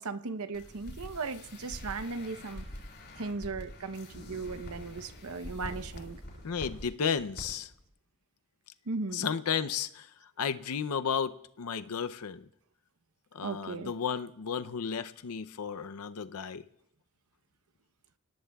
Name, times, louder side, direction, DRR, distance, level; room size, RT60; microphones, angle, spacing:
voice 1, 0.0-2.7 3.2-6.2 8.9-9.3 13.4-13.9, right 3 dB, 75° right, 0.8 m, -37 dB
sound 1, 0.5-6.8 7.2-7.4 7.7-7.8, equal, 50° left, 6.5 m, -45 dB
voice 2, 6.4-7.7 9.1-10.1 10.4-12.5 13.3-16.6, left 7 dB, 85° left, 0.6 m, -33 dB
29.0 x 17.5 x 2.3 m
head